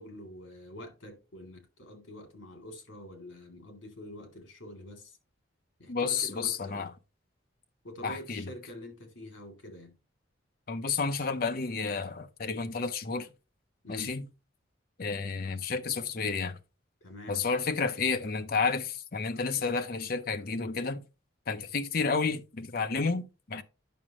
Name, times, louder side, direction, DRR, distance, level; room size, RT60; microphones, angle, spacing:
voice 1, 0.0-5.2 5.8-6.9 7.8-9.9 13.8-14.1 17.0-17.4, equal, 75° left, 2.7 m, -46 dB
voice 2, 5.9-6.9 8.0-8.5 10.7-13.3 13.9-14.2 15.0-16.6 17.3-21.0 21.5-23.6, left 4 dB, 50° left, 0.6 m, -31 dB
9.3 x 6.2 x 3.0 m
head